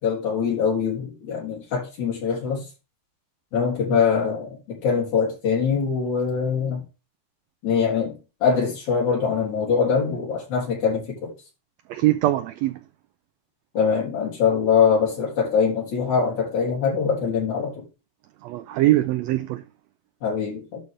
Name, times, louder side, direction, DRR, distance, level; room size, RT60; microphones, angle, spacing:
voice 1, 0.0-2.6 3.5-6.8 7.6-8.1 8.4-11.3 13.7-17.8 20.2-20.8, left 6 dB, 70° left, 4.9 m, -23 dB
voice 2, 11.9-12.8 18.4-19.6, right 16 dB, 85° right, 1.5 m, -22 dB
12.0 x 4.1 x 3.7 m
omnidirectional pair, 3.5 m